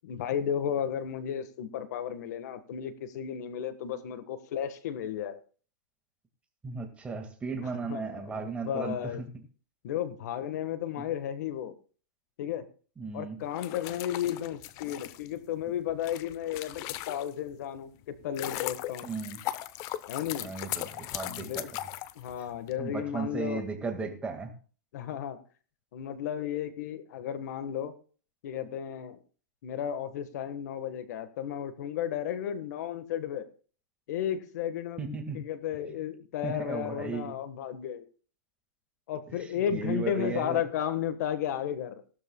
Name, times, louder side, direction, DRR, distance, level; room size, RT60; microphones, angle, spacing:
voice 1, 0.0-5.4 7.7-9.2 9.8-11.7 12.4-12.6 13.1-19.1 20.1-20.5 21.3-21.7 22.1-23.6 24.9-25.4 25.9-27.9 28.4-29.2 29.6-33.5 34.1-35.0 35.3-38.0 39.1-42.0, left 9 dB, 55° left, 11 dB, 1.4 m, -33 dB
voice 2, 6.6-9.3 13.0-13.4 19.0-19.4 20.4-21.9 22.8-24.5 35.0-35.4 36.4-37.4 39.3-40.6, right 4 dB, 10° right, 4 dB, 1.9 m, -36 dB
sound 1, 13.4-17.5 18.0-22.7, left 14 dB, 30° left, 0.7 m, -38 dB
18.5 x 12.5 x 2.3 m, 0.39 s
hypercardioid pair, 150°, 11 cm